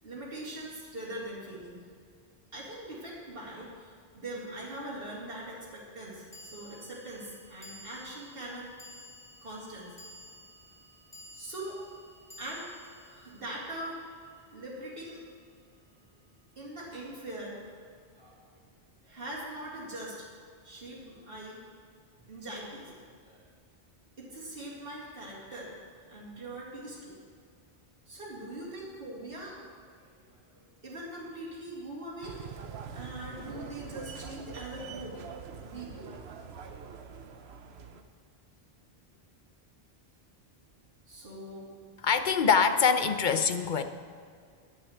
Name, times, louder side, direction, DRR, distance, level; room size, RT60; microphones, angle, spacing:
voice 1, 0.0-1.8 2.5-8.7 9.4-10.0 11.3-11.8 12.4-14.1 14.5-15.5 16.5-17.6 18.2-18.4 19.0-20.3 20.6-21.6 22.3-23.5 24.2-25.7 26.1-27.2 28.1-32.4 32.9-35.2 35.6-36.1 36.4-36.5 41.1-41.7, right 1 dB, 65° right, -6 dB, 2.9 m, -42 dB
sound 1, 4.2-4.3 6.3-14.7, left 1 dB, 5° left, 2.0 m, -53 dB
sound 2, 32.2-38.0, right 6 dB, 80° right, 1.1 m, -44 dB
voice 2, 42.0-43.8, left 6 dB, 55° left, 9 dB, 0.8 m, -24 dB
10.0 x 8.4 x 9.2 m, 2.2 s
omnidirectional pair, 1.0 m